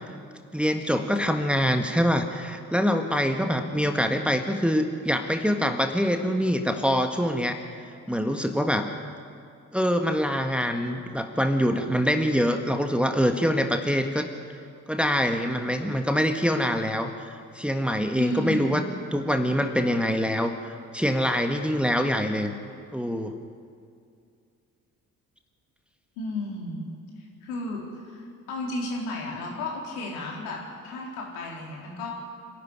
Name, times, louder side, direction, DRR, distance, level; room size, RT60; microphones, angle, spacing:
voice 1, 0.5-7.6 8.1-8.9 9.7-14.3 14.9-18.8 19.1-22.5 22.9-23.3, equal, 5° right, 5 dB, 1.8 m, -25 dB
voice 2, 3.2-4.3 18.2-18.7 26.2-26.8 27.4-28.1 28.5-32.1, left 2 dB, 70° left, -2 dB, 4.2 m, -33 dB
26.5 x 12.0 x 10.0 m, 2.3 s
figure-of-eight pair, 45°, 41 cm